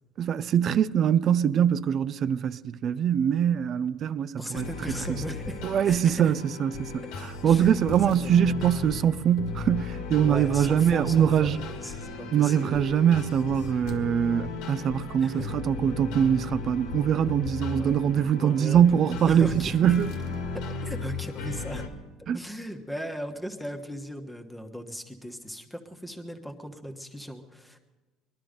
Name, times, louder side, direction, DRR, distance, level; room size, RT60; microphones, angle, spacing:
voice 1, 0.2-4.7 5.6-11.6 12.3-20.2 22.3-22.4, right 9 dB, 40° right, 0.4 m, -23 dB
voice 2, 4.4-6.3 7.4-8.6 10.3-12.8 15.2-15.5 17.8-18.0 18.4-19.8 20.5-21.8 22.3-27.8, equal, 5° left, 1.2 m, -38 dB
sound 1, 4.5-21.9, left 4 dB, 80° left, 1.7 m, -36 dB
20.5 x 12.5 x 5.2 m
cardioid pair, 135°, 0 cm